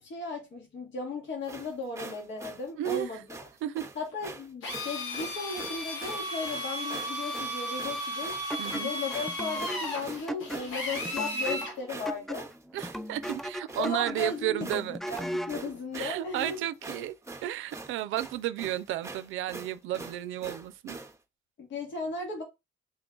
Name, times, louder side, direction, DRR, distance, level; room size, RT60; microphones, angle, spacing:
voice 1, 0.0-3.2 4.0-8.4 8.8-12.5 13.8-16.6 21.6-22.4, left 4 dB, 65° left, 1.7 m, -36 dB
sound 1, 1.4-21.2, right 3 dB, 15° right, 0.7 m, -44 dB
voice 2, 2.8-3.1 3.6-3.9 8.6-8.9 12.7-15.0 16.0-17.2 17.4-21.0, right 13 dB, 85° right, 0.4 m, -33 dB
Drill, 4.6-11.8, equal, 85° left, 1.3 m, -35 dB
sound 2, 8.5-15.6, equal, ahead, 0.3 m, -38 dB
3.9 x 2.3 x 3.8 m
cardioid pair, 90°, 20 cm